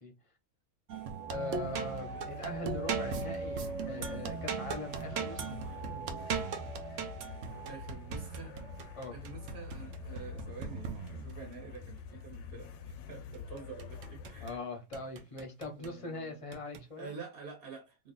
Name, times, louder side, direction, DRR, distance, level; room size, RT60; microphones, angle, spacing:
sound 1, 0.9-11.6 13.3-14.6 14.9-16.0 16.5-16.8, right 5 dB, 65° right, 0.9 m, -39 dB
voice 1, 1.3-5.5 8.9-9.1 14.4-17.1, left 2 dB, 35° left, 0.6 m, -41 dB
sound 2, 1.5-14.6, left 6 dB, 70° left, 0.8 m, -47 dB
voice 2, 7.6-8.6 9.1-14.6 15.7-16.4 17.0-18.1, right 5 dB, 45° right, 1.3 m, -48 dB
2.8 x 2.6 x 3.8 m
omnidirectional pair, 1.5 m